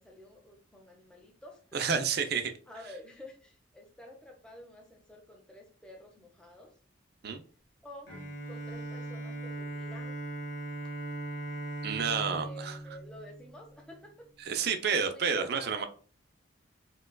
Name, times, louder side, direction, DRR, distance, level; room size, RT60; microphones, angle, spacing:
voice 1, 0.0-1.6 2.1-2.3 2.7-6.7 7.8-8.1 8.5-10.2 10.8-10.9 12.3-14.3 14.7-15.9, left 1 dB, 5° left, 0 dB, 0.7 m, -49 dB
voice 2, 1.7-2.5 7.2-7.4 11.8-12.8 14.5-15.9, right 6 dB, 55° right, 7 dB, 0.5 m, -30 dB
Bowed string instrument, 8.1-13.9, right 1 dB, 70° left, 1.3 m, -39 dB
4.4 x 2.3 x 2.2 m, 0.39 s
head